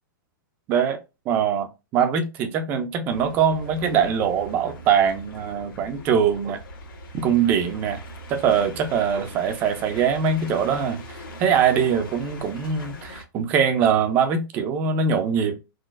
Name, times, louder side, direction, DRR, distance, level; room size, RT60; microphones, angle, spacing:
voice 1, 0.7-1.0 1.3-1.7 1.9-6.6 7.2-8.0 8.3-15.6, right 7 dB, 15° right, 0.4 m, -22 dB
sound 1, 3.1-13.2, equal, 75° left, 1.2 m, -41 dB
3.8 x 2.5 x 2.4 m
hypercardioid pair, 170°, 12 cm